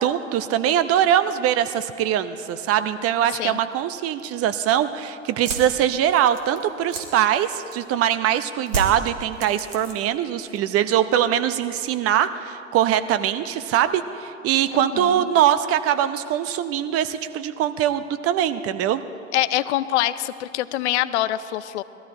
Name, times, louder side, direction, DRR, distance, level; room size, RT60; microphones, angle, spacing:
voice 1, 0.0-19.0, right 10 dB, 40° right, 12 dB, 0.8 m, -22 dB
sound 1, 5.3-8.0 8.7-10.2 10.5-11.1, right 3 dB, 80° right, 2.7 m, -32 dB
voice 2, 14.7-15.4 19.3-21.8, left 14 dB, 65° left, 15 dB, 0.6 m, -25 dB
21.0 x 14.0 x 4.3 m, 2.8 s
hypercardioid pair, 90°, 36 cm